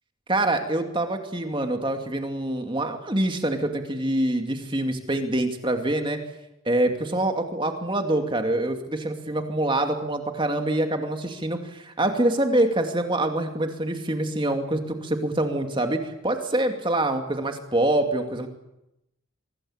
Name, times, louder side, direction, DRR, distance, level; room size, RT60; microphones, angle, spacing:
voice 1, 0.3-6.2 6.7-18.5, right 1 dB, 25° right, 5 dB, 2.5 m, -25 dB
24.5 x 19.5 x 8.8 m, 0.89 s
head